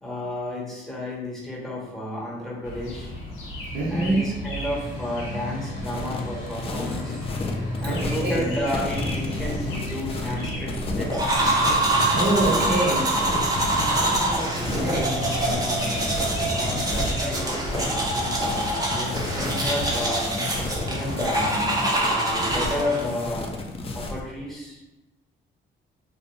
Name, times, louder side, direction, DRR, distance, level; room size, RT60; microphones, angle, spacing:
voice 1, 0.0-3.1 3.9-7.2 7.8-11.4 12.4-13.0 13.9-16.0 16.5-20.3 20.9-23.5 23.9-24.8, left 1 dB, ahead, -4 dB, 0.8 m, -32 dB
sound 1, 2.6-20.1, left 1 dB, 85° left, 0.7 m, -34 dB
voice 2, 3.7-4.2 7.8-8.4 12.1-13.0 14.6-15.1, right 2 dB, 60° right, -4 dB, 0.7 m, -24 dB
sound 2, 5.8-24.2, left 2 dB, 30° left, 0.4 m, -32 dB
sound 3, 11.1-23.1, right 2 dB, 20° right, 0.6 m, -25 dB
2.5 x 2.0 x 2.9 m, 1.0 s
cardioid pair, 90°, 20 cm